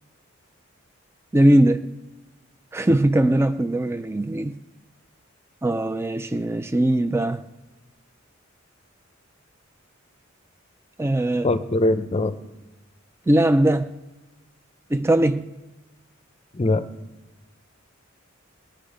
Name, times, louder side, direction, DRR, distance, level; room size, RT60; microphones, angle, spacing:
voice 1, 1.3-1.9 2.7-4.6 5.6-7.4 11.0-11.5 13.3-13.9 14.9-15.5, right 1 dB, 10° right, 10 dB, 0.4 m, -20 dB
voice 2, 11.4-12.3 16.5-16.8, left 2 dB, 30° left, 12 dB, 0.6 m, -21 dB
19.5 x 10.0 x 5.0 m, 1.1 s
head